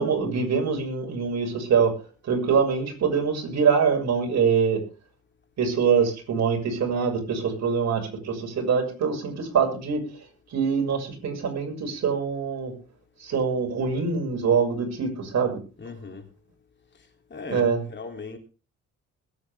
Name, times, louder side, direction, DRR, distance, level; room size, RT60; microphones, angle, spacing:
voice 1, 0.0-1.9 2.2-4.8 5.6-12.7 13.2-15.6 17.4-17.8, right 6 dB, 60° right, 6.4 m, -24 dB
voice 2, 15.8-16.2 17.3-18.4, left 4 dB, 35° left, 3.2 m, -38 dB
21.0 x 9.3 x 3.6 m
cardioid pair, 90°, 30 cm